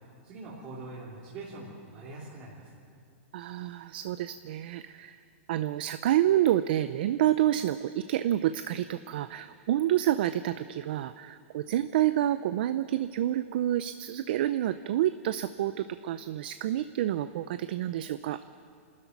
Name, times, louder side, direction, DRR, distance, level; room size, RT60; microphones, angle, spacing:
voice 1, 0.0-2.8, right 2 dB, 25° right, -7 dB, 3.0 m, -43 dB
voice 2, 3.3-5.2 5.5-18.4, right 12 dB, 50° right, 12 dB, 0.5 m, -28 dB
28.0 x 13.5 x 9.4 m, 2.3 s
supercardioid pair, 170°, 7 cm